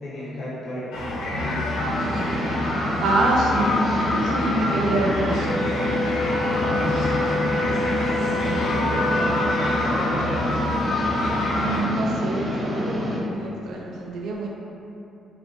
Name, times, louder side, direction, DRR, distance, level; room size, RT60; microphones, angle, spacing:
voice 1, 0.0-1.7 6.1-7.1 8.2-9.4 9.7-10.6, equal, 65° left, -8 dB, 0.9 m, -33 dB
sound 1, 0.9-11.8, left 2 dB, 85° left, 0.4 m, -27 dB
sound 2, 1.8-13.2, equal, 30° right, 0.7 m, -28 dB
voice 2, 3.0-5.6 6.5-6.6 11.5-14.5, right 2 dB, 75° right, -2 dB, 0.4 m, -26 dB
Wind instrument woodwind instrument, 5.4-10.1, left 2 dB, 10° left, 0.3 m, -28 dB
2.7 x 2.1 x 3.0 m, 2.8 s
cardioid pair, 90°, 0 cm